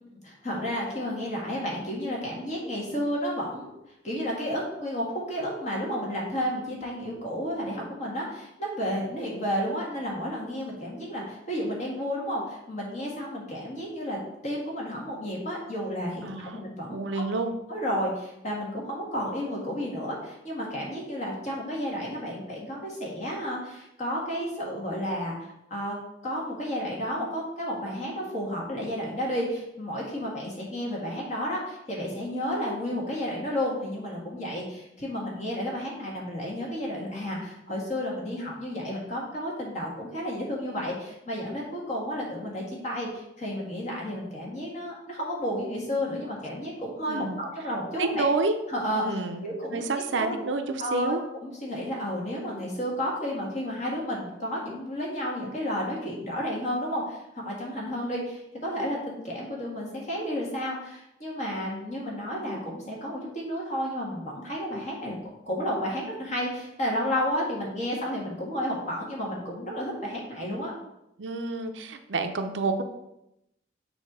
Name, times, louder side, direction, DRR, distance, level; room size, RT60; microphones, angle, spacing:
voice 1, 0.0-3.7 4.0-14.2 14.4-17.2 17.7-26.0 26.2-48.3 48.7-49.9 50.2-50.4 50.8-51.1 51.4-65.2 65.4-70.7, equal, 40° left, -3 dB, 1.7 m, -32 dB
voice 2, 16.2-16.6 16.9-17.5 47.1-47.4 48.0-48.5 48.9-49.4 49.7-51.2 71.2-72.8, right 3 dB, 80° right, 7 dB, 0.6 m, -29 dB
6.6 x 2.8 x 5.4 m, 0.85 s
head